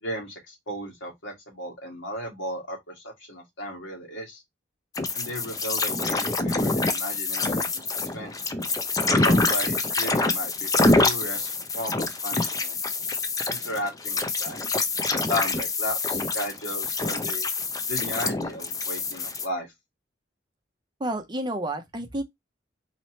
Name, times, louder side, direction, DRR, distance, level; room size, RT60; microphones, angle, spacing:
voice 1, 0.0-4.4 5.1-8.4 9.1-12.8 13.5-14.7 15.1-17.5 17.9-19.7, equal, 85° left, 2.0 m, -35 dB
sound 1, 4.9-19.5, left 3 dB, 20° left, 0.5 m, -26 dB
voice 2, 21.0-22.2, right 1 dB, 25° right, 0.8 m, -30 dB
4.2 x 3.1 x 2.8 m
head